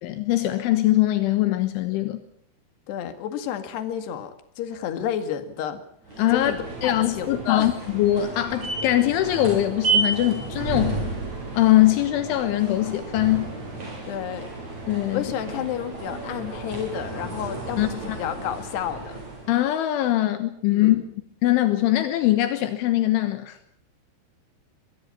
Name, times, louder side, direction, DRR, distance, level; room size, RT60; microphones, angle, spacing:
voice 1, 0.0-2.2 6.2-6.5 6.8-11.0 11.5-13.5 14.9-15.3 17.8-18.2 19.5-21.2 21.4-23.6, left 14 dB, 80° left, 9 dB, 3.6 m, -22 dB
voice 2, 2.9-5.8 6.3-7.7 14.1-14.5 15.1-19.2 20.7-21.0, left 9 dB, 60° left, 9 dB, 3.9 m, -31 dB
sound 1, 6.1-19.6, right 3 dB, 35° right, 7.0 m, -32 dB
23.5 x 23.0 x 5.7 m, 0.66 s
omnidirectional pair, 5.7 m